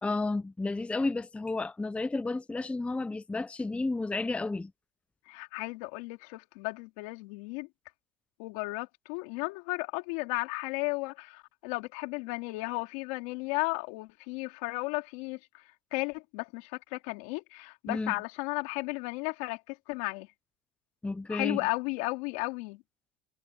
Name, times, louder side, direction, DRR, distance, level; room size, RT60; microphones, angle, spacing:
voice 1, 0.0-4.7 17.9-18.2 21.0-21.6, left 3 dB, 5° left, 0.5 m, -32 dB
voice 2, 5.3-7.7 8.4-15.6 15.9-20.3 21.3-22.8, left 26 dB, 90° left, 3.9 m, -34 dB
cardioid pair, 130°, 16 cm